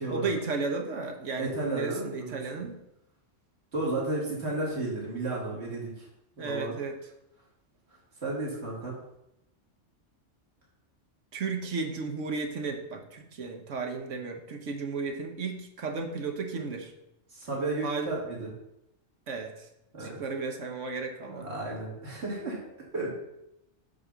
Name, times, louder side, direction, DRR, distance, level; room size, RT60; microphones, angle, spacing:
voice 1, 0.1-2.8 6.4-7.0 11.3-16.9 17.8-18.2 19.3-19.7 20.0-21.5, right 4 dB, 75° right, 4 dB, 1.4 m, -34 dB
voice 2, 1.4-2.6 3.7-6.1 6.4-6.7 8.2-8.9 17.3-18.5 19.9-20.2 21.3-22.6 22.9-23.2, right 2 dB, 60° right, -4 dB, 2.6 m, -33 dB
8.2 x 4.2 x 6.2 m, 0.85 s
omnidirectional pair, 1.3 m